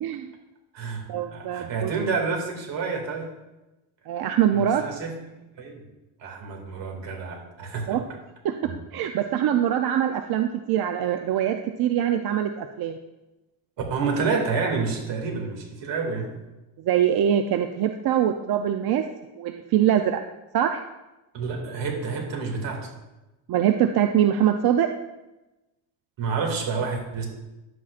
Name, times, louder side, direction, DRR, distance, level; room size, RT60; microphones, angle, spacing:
voice 1, 0.0-0.3 1.1-1.9 4.1-4.8 7.9-8.0 8.4-13.0 16.8-19.0 19.4-20.2 20.5-20.8 23.5-24.9, right 10 dB, 55° right, 6 dB, 0.5 m, -23 dB
voice 2, 0.7-1.0 1.3-3.3 4.5-5.2 5.6-5.8 6.2-8.0 8.6-8.8 13.9-16.4 21.3-22.9 26.2-27.3, right 4 dB, 70° right, 0 dB, 2.3 m, -29 dB
11.0 x 8.4 x 2.5 m, 1.0 s
cardioid pair, 125°, 46 cm